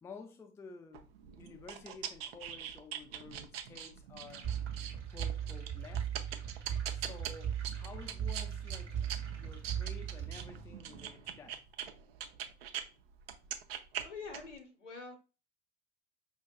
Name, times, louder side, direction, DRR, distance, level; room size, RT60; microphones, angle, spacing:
voice 1, 0.0-1.1 1.4-4.4 5.1-6.1 6.9-9.0 9.4-11.6, left 4 dB, 10° left, 0.4 m, -52 dB
sound 1, 0.9-12.9 13.2-14.6, right 9 dB, 60° right, 0.6 m, -43 dB
sound 2, 4.3-10.3, right 4 dB, 80° right, 0.9 m, -58 dB
sound 3, 4.4-11.1, right 9 dB, 25° right, 1.0 m, -38 dB
voice 2, 14.0-15.2, left 4 dB, 80° left, 1.0 m, -46 dB
5.0 x 2.6 x 2.3 m
figure-of-eight pair, 75°, 35 cm